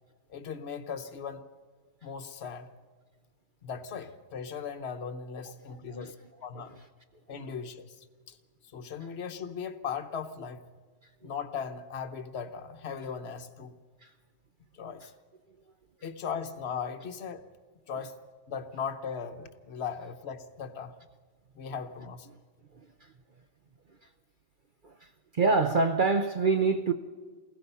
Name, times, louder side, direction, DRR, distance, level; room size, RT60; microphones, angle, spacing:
voice 1, 0.3-1.5 2.0-2.7 3.6-6.2 6.4-6.7 7.3-8.4 8.7-10.6 11.2-13.7 14.7-15.1 16.0-17.4 17.9-18.2 18.5-21.0 21.6-22.3, left 6 dB, 45° left, 1.2 m, -38 dB
voice 2, 5.7-6.1 7.3-7.4 24.8-24.9 25.3-26.9, right 4 dB, 55° right, 0.6 m, -25 dB
29.0 x 20.5 x 5.6 m
omnidirectional pair, 1.8 m